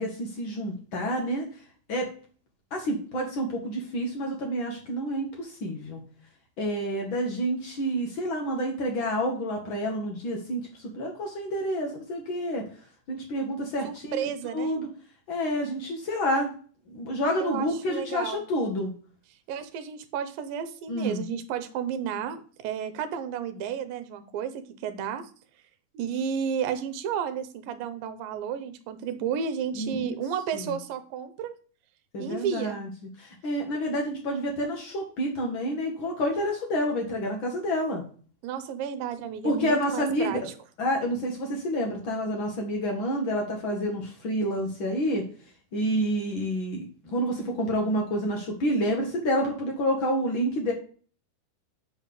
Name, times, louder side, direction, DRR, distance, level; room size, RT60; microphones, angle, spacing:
voice 1, 0.0-1.5 1.9-2.1 2.7-6.0 6.6-12.6 13.1-14.9 15.3-16.5 16.9-18.9 20.9-21.2 29.7-30.2 30.5-30.7 32.1-32.9 33.2-38.0 39.4-40.5 40.8-45.2 45.7-50.7, equal, 80° left, 1 dB, 1.1 m, -29 dB
voice 2, 13.8-14.8 17.4-18.4 19.5-25.3 25.9-31.5 32.2-32.8 38.4-40.4, right 8 dB, 80° right, 9 dB, 2.4 m, -32 dB
8.2 x 3.5 x 6.7 m, 0.42 s
omnidirectional pair, 4.3 m